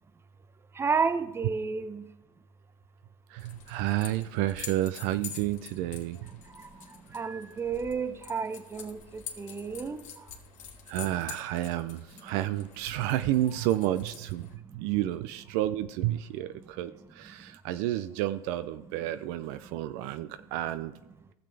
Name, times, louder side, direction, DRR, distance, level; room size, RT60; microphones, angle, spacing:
voice 1, 0.7-2.1 6.5-6.7 7.1-10.0, right 5 dB, 15° right, 11 dB, 0.7 m, -31 dB
voice 2, 3.3-6.3 10.9-20.9, right 14 dB, 50° right, 12 dB, 0.5 m, -31 dB
sound 1, 3.4-14.6, left 7 dB, 40° left, 2.0 m, -47 dB
18.5 x 6.7 x 3.4 m, 0.97 s
hypercardioid pair, 105°, 19 cm